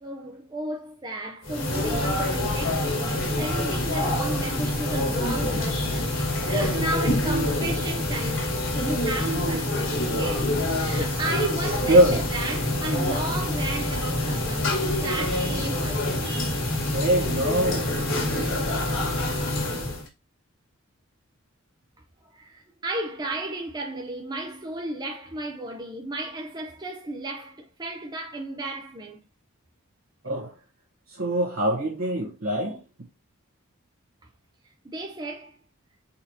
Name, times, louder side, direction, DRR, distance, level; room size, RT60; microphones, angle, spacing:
voice 1, 0.0-10.5 10.8-16.8 22.3-29.2 34.8-35.5, right 2 dB, 20° right, 0.5 m, -34 dB
sound 1, 1.4-20.1, left 1 dB, 60° left, 1.7 m, -26 dB
voice 2, 11.9-12.2 16.9-18.0 30.2-30.5 31.1-32.8, right 1 dB, 70° right, 1.2 m, -22 dB
4.5 x 4.2 x 2.8 m
head